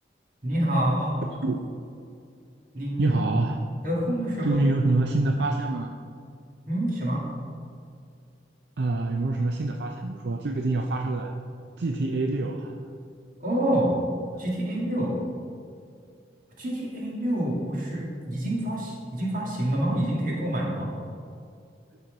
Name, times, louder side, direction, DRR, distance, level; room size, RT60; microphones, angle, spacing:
voice 1, 0.4-1.2 2.7-3.1 3.8-4.6 6.7-7.3 13.4-14.0 14.4-15.2 16.6-21.0, right 1 dB, 50° right, -4 dB, 2.3 m, -27 dB
voice 2, 3.0-3.6 4.4-5.9 8.8-11.3 11.8-12.8, right 2 dB, 75° right, 3 dB, 0.5 m, -26 dB
12.5 x 4.4 x 5.3 m, 2.3 s
head